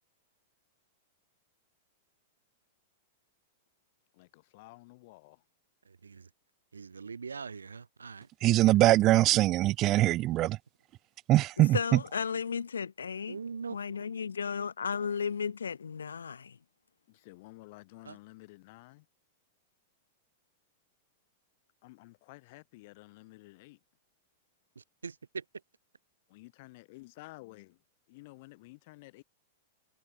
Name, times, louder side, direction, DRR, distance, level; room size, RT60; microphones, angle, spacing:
voice 1, 4.1-5.4 17.1-19.1 21.8-23.8 26.3-27.8 28.1-29.2, left 22 dB, 55° left, 8.0 m, -52 dB
voice 2, 5.9-6.3 6.7-8.3 10.3-10.4 13.3-13.8 15.0-15.1 18.1-18.2 24.8-25.4, right 5 dB, 85° right, 3.7 m, -42 dB
voice 3, 8.4-10.6 11.3-11.8, right 16 dB, 40° right, 0.5 m, -23 dB
voice 4, 11.6-13.4 13.7-16.6, left 6 dB, 80° left, 1.4 m, -34 dB
hypercardioid pair, 105°, 0 cm